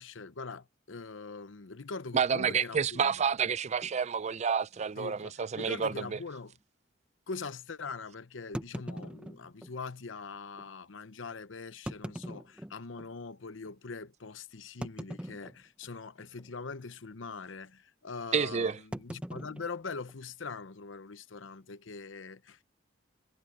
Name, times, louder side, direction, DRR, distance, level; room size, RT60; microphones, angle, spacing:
voice 1, 0.0-3.2 5.0-6.5 7.3-22.6, left 4 dB, 85° left, 0.9 m, -42 dB
voice 2, 2.1-6.2 18.3-18.8, right 6 dB, 35° right, 0.5 m, -29 dB
sound 1, 3.8-4.0 4.7-4.8 5.1-5.2 5.8-6.0 8.5-9.7 10.6-10.7 11.7-13.1 13.6-13.7 14.8-15.9 16.2-16.5 16.8-17.1 18.9-20.5, equal, 5° right, 0.8 m, -42 dB
head